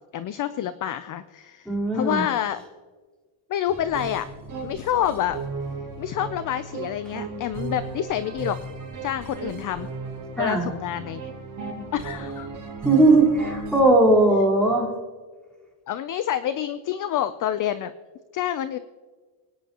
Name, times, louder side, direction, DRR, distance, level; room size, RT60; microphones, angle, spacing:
voice 1, 0.1-1.7 1.9-2.6 3.5-4.3 4.6-5.4 6.0-8.6 9.0-9.9 10.4-11.3 11.9-12.5 15.9-17.9 18.3-18.8, left 10 dB, 40° left, 13 dB, 0.5 m, -27 dB
voice 2, 1.6-2.2 10.4-10.7 12.8-14.9, right 2 dB, ahead, -3 dB, 4.2 m, -18 dB
sound 1, 3.7-13.8, right 4 dB, 40° right, 4.7 m, -35 dB
24.0 x 10.0 x 2.9 m, 1.4 s
cardioid pair, 140°, 50 cm